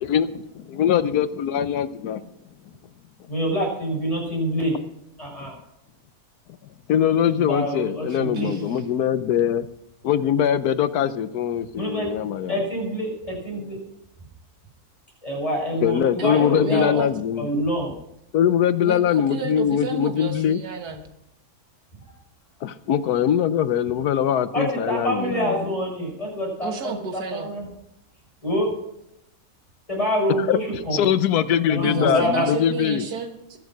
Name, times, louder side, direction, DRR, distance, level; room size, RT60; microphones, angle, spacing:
voice 1, 0.0-2.2 5.4-5.5 6.9-9.7 10.0-12.7 15.8-17.6 18.3-20.6 22.6-25.6 30.5-30.6 30.9-33.0, left 9 dB, 80° left, 13 dB, 1.3 m, -22 dB
voice 2, 3.3-4.7 5.2-5.5 7.4-8.5 11.7-12.1 12.5-13.8 15.2-17.0 17.4-17.9 24.5-27.6 28.4-28.7 29.9-31.0 31.7-32.5, equal, 20° left, -3 dB, 6.3 m, -26 dB
voice 3, 8.1-8.9 16.2-17.1 18.8-21.0 26.6-27.5 31.8-33.6, right 5 dB, 85° right, 5 dB, 2.1 m, -32 dB
22.0 x 7.4 x 6.1 m, 0.83 s
omnidirectional pair, 1.6 m